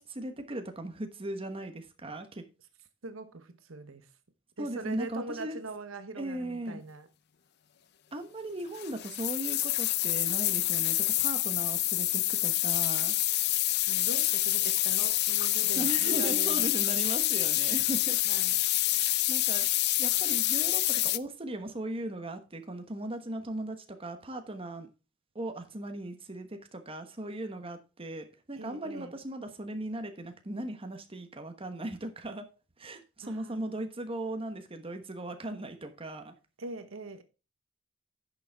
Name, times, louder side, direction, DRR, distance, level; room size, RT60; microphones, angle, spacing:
voice 1, 0.0-2.4 4.6-5.6 6.2-6.8 8.1-13.1 15.7-18.2 18.7-19.7 20.0-24.9 25.3-32.5 32.8-36.3, right 1 dB, 30° right, 1.2 m, -38 dB
voice 2, 3.0-4.1 4.6-7.1 13.8-16.7 18.1-18.6 28.6-29.1 33.2-33.8 36.6-37.2, right 3 dB, 80° right, 1.0 m, -42 dB
sound 1, 8.8-21.2, left 16 dB, 55° left, 0.5 m, -27 dB
10.5 x 6.6 x 3.5 m
head